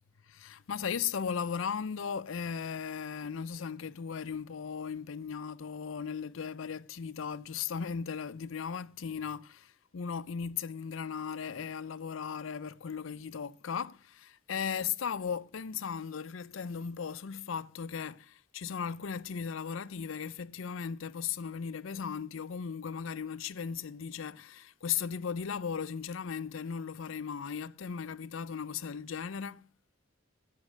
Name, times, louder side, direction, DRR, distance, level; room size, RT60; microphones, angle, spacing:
voice 1, 0.3-29.7, left 7 dB, 85° left, 0.5 m, -37 dB
8.5 x 7.4 x 6.2 m
head